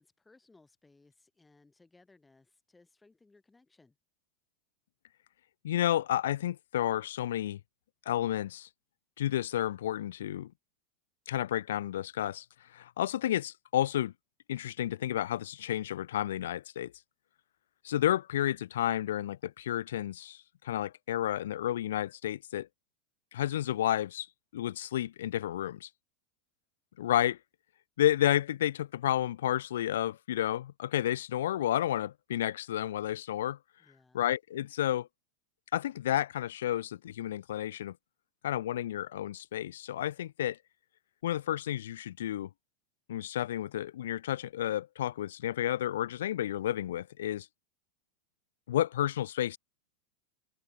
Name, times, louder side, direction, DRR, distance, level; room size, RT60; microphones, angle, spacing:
voice 1, 0.0-4.0 33.8-34.2, left 3 dB, 10° left, 4.4 m, -63 dB
voice 2, 5.6-7.6 8.1-8.7 9.2-10.5 11.3-12.5 12.7-14.1 14.5-16.9 17.8-22.7 23.3-24.3 24.5-25.9 27.0-27.4 28.0-33.6 34.1-35.1 35.7-38.0 38.4-40.6 41.2-42.5 43.1-47.5 48.7-49.6, left 12 dB, 80° left, 0.4 m, -31 dB
hypercardioid pair, 110°, 0 cm